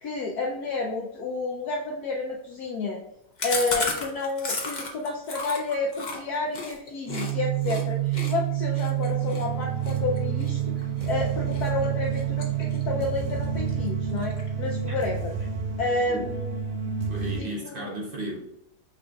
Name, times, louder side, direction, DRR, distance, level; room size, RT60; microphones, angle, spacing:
voice 1, 0.0-3.0 3.4-10.7 11.0-15.3 15.8-16.6 17.4-17.9, left 3 dB, 70° left, -1 dB, 1.0 m, -30 dB
Chewing mastication, 3.4-7.3 7.6-7.8 8.1-11.1 11.5-11.8 12.1-13.0 13.3-13.4 13.7-13.8 14.1-14.7, left 3 dB, 50° left, 0.5 m, -33 dB
sound 1, 7.1-17.4, right 9 dB, 70° right, 1.2 m, -28 dB
voice 2, 17.1-18.4, right 1 dB, 50° right, -1 dB, 0.7 m, -34 dB
5.9 x 3.7 x 2.3 m, 0.78 s
omnidirectional pair, 2.0 m